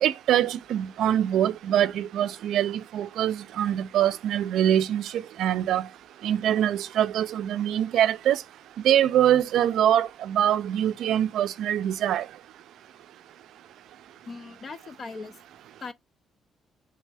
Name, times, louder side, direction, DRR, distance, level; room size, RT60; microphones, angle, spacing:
voice 1, 0.0-5.9 6.2-8.4 8.8-12.3, right 11 dB, 80° right, 0.3 m, -24 dB
voice 2, 14.3-15.4 15.8-15.9, left 4 dB, 45° left, 0.5 m, -39 dB
3.3 x 3.2 x 3.3 m
cardioid pair, 90°, 0 cm